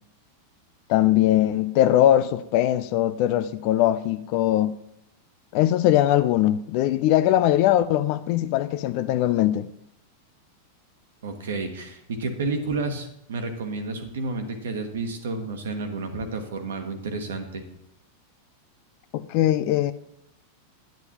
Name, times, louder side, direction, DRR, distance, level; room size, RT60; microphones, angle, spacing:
voice 1, 0.9-4.8 5.5-9.7 19.1-19.9, left 13 dB, 45° left, 0.5 m, -21 dB
voice 2, 11.2-17.6, right 3 dB, 60° right, 1.4 m, -31 dB
10.5 x 9.5 x 3.0 m
figure-of-eight pair, 90°, 0 cm